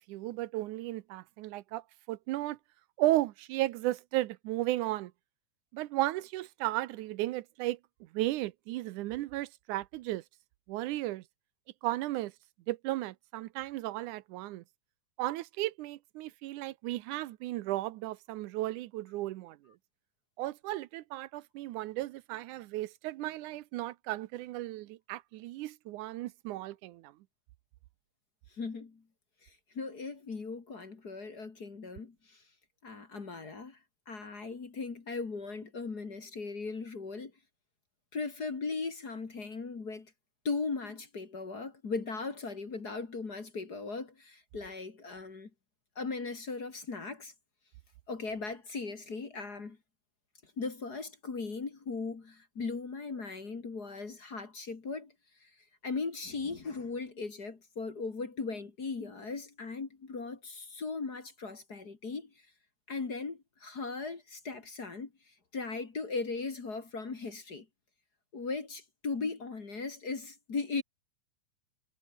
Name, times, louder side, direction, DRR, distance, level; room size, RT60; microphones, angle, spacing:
voice 1, 0.0-2.6 3.0-5.1 5.7-7.8 8.1-10.2 10.7-11.2 11.8-12.3 12.7-14.6 15.2-19.7 20.4-27.1, right 16 dB, 80° right, 2.2 m, -34 dB
voice 2, 28.5-29.0 29.4-32.4 32.8-33.8 34.1-37.3 38.1-40.1 40.4-45.5 46.0-47.3 48.1-49.8 50.6-55.1 55.4-55.5 55.8-62.3 62.9-65.1 65.5-67.7 68.3-70.8, left 4 dB, 35° left, 2.4 m, -38 dB
omnidirectional pair, 3.5 m